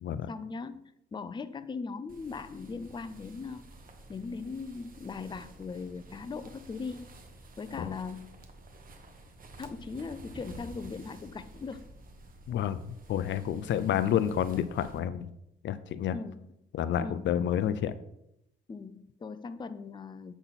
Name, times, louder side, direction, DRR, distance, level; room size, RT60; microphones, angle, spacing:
voice 1, 0.1-3.6 4.1-7.1 7.6-8.3 9.6-11.8 16.1-16.5 17.0-17.4 18.7-20.3, left 4 dB, 25° left, 12 dB, 0.5 m, -39 dB
sound 1, 2.1-15.0, right 2 dB, 45° right, 1.3 m, -51 dB
voice 2, 12.5-12.8 13.1-15.3 15.6-16.1 16.7-17.9, left 10 dB, 65° left, 14 dB, 0.5 m, -29 dB
8.2 x 6.0 x 4.1 m, 0.80 s
cardioid pair, 90°, 20 cm